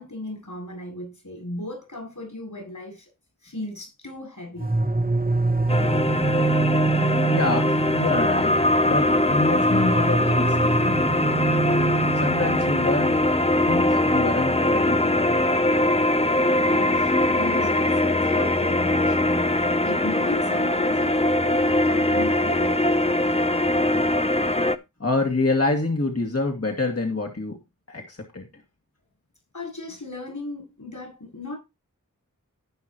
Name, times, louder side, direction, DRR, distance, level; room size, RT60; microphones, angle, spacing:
voice 1, 0.0-3.0 3.4-4.7 16.6-22.9 29.5-31.6, left 1 dB, 65° left, 8.0 m, -36 dB
sound 1, 4.6-17.4, right 3 dB, 25° right, 1.1 m, -27 dB
sound 2, 5.7-24.8, left 1 dB, 20° left, 0.7 m, -22 dB
voice 2, 7.0-8.5 8.8-11.2 12.2-13.1 13.7-15.4 25.0-27.6 27.9-28.5, left 2 dB, 45° left, 2.2 m, -26 dB
17.0 x 5.9 x 3.1 m
wide cardioid pair, 50°, 33 cm